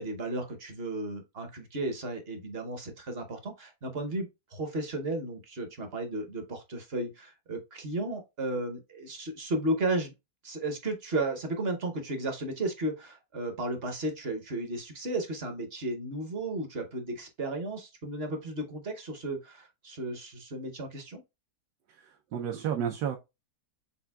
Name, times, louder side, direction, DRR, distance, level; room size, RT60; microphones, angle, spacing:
voice 1, 0.0-10.1 10.4-21.2, right 2 dB, 45° right, 0.9 m, -34 dB
voice 2, 22.0-23.2, right 8 dB, 75° right, 1.2 m, -32 dB
6.9 x 2.5 x 2.2 m
omnidirectional pair, 1.8 m